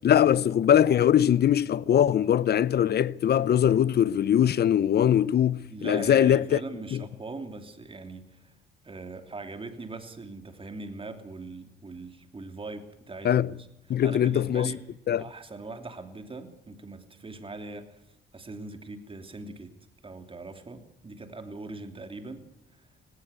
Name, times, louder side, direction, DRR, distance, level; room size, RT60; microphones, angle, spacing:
voice 1, 0.0-6.6 6.9-7.0 13.2-13.5 13.9-14.7 15.1-15.2, left 10 dB, 55° left, 0.8 m, -22 dB
voice 2, 5.7-8.5 8.8-14.8 15.2-18.0 18.3-19.7 20.0-22.4, right 3 dB, 25° right, 3.1 m, -41 dB
18.5 x 18.0 x 8.3 m
cardioid pair, 90°, 20 cm